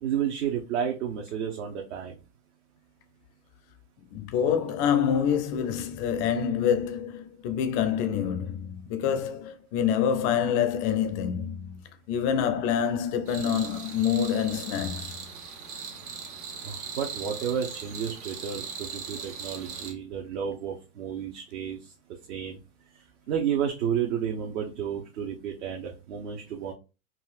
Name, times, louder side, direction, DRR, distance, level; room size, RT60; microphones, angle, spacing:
voice 1, 0.0-2.1 16.6-21.9 22.3-22.6 23.3-26.7, right 8 dB, 55° right, 0.8 m, -31 dB
voice 2, 4.1-11.8 12.1-15.3, left 8 dB, 30° left, 0.5 m, -26 dB
sound 1, 13.3-19.9, right 6 dB, 70° right, 1.1 m, -39 dB
4.0 x 2.3 x 2.4 m
hypercardioid pair, 110°, 45 cm